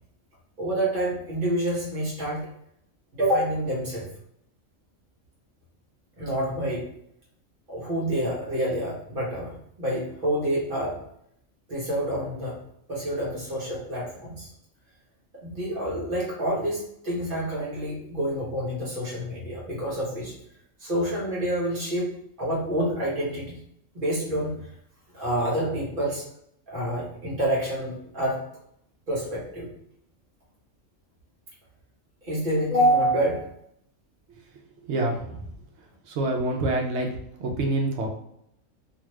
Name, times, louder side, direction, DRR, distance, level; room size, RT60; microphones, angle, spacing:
voice 1, 0.6-2.4 3.1-4.1 6.2-6.8 7.7-11.0 11.7-12.6 12.9-14.5 15.4-20.3 20.8-22.1 22.4-23.5 23.9-24.5 25.1-26.3 26.7-28.4 29.1-29.7 32.2-33.5, right 1 dB, 45° right, -5 dB, 1.1 m, -27 dB
voice 2, 36.2-37.1 37.4-38.1, right 2 dB, 65° right, 2 dB, 0.8 m, -25 dB
2.6 x 2.3 x 3.1 m, 0.74 s
omnidirectional pair, 1.3 m